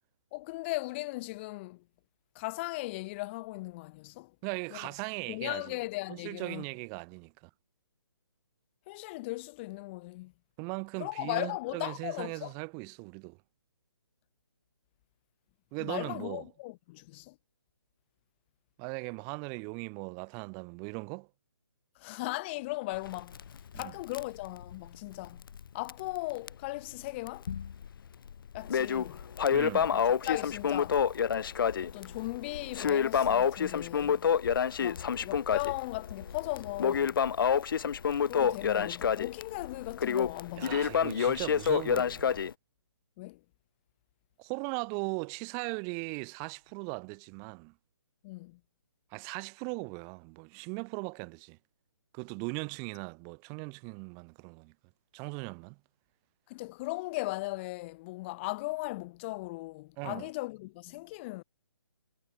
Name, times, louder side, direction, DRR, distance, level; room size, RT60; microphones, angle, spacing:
voice 1, 0.3-1.8 2.4-4.3 4.7-4.9 5.3-6.6 8.9-10.3 11.0-12.5 15.8-17.4 22.0-23.4 23.7-25.4 25.7-27.5 28.5-29.2 29.9-31.0 31.8-34.2 34.8-37.2 38.3-41.0 43.2-43.4 48.2-48.6 56.5-61.4, left 22 dB, 25° left, 5.6 m, -37 dB
voice 2, 4.4-5.8 6.1-7.5 10.6-13.4 15.7-16.4 18.8-21.3 23.7-23.9 29.5-29.9 40.6-42.4 44.4-47.7 49.1-51.6 52.1-54.7 55.1-55.8 60.0-60.3, right 40 dB or more, 20° right, 5.6 m, -39 dB
Crackle, 22.9-25.6 25.9-26.0 26.5-26.6 27.3-27.9 28.3-42.5, left 7 dB, 55° left, 0.7 m, -28 dB
figure-of-eight pair, 150°, 14 cm